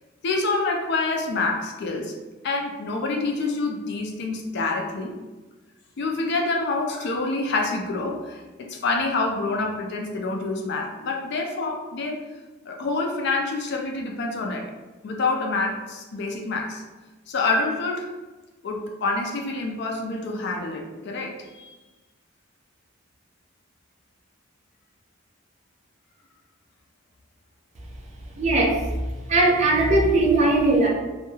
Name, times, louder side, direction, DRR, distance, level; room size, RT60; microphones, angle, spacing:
voice 1, 0.2-2.1 2.4-5.1 6.0-12.2 12.7-14.7 15.0-16.8 17.3-18.1 18.6-21.8, left 3 dB, 55° left, 1 dB, 0.4 m, -27 dB
voice 2, 28.4-28.8 29.3-30.9, right 2 dB, 35° right, -2 dB, 0.4 m, -19 dB
2.2 x 2.1 x 3.0 m, 1.2 s
head